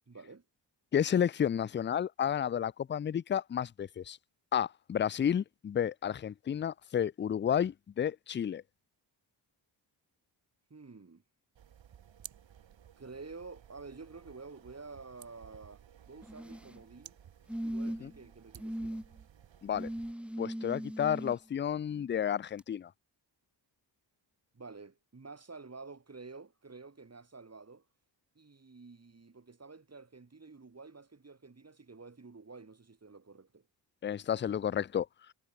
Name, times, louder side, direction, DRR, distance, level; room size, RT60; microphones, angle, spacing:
voice 1, 0.1-0.5 10.7-11.2 13.0-17.2 17.6-19.0 24.5-27.8 28.3-33.7, right 4 dB, 35° right, 5.9 m, -50 dB
voice 2, 0.9-4.2 4.5-8.6 18.0-18.1 19.6-19.9 20.4-22.9 34.0-35.1, left 9 dB, 25° left, 0.4 m, -31 dB
sound 1, 11.5-20.1, right 9 dB, 80° right, 3.5 m, -56 dB
sound 2, 16.2-16.8 17.5-18.2 18.6-19.0 19.7-21.3 22.6-22.7, equal, ahead, 1.0 m, -38 dB
cardioid pair, 75°, 45 cm